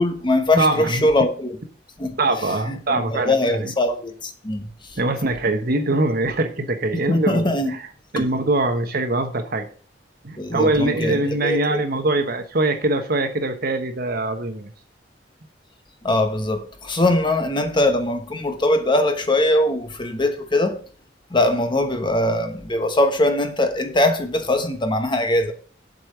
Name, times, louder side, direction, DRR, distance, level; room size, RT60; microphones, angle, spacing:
voice 1, 0.0-1.6 2.0-2.2 2.7-5.0 7.1-7.7 10.4-11.8 16.0-20.8 21.3-25.5, left 1 dB, 25° left, 1.1 m, -21 dB
voice 2, 0.6-1.1 2.2-3.7 5.0-7.9 8.1-9.7 10.2-14.7, right 2 dB, 55° right, 1.2 m, -23 dB
7.9 x 5.5 x 6.6 m
head